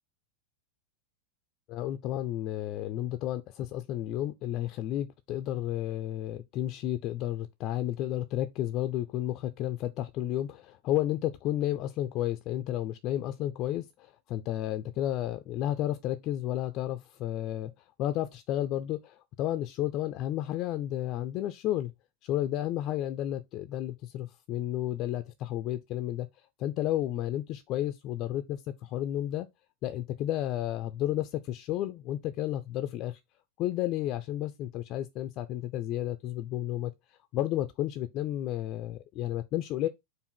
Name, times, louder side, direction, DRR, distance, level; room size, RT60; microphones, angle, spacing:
voice 1, 1.7-17.7 18.0-21.9 22.2-26.3 26.6-29.5 29.8-33.2 33.6-36.9 37.3-39.9, left 13 dB, 35° left, 0.4 m, -32 dB
4.7 x 2.6 x 4.4 m
figure-of-eight pair, 90°, 0 cm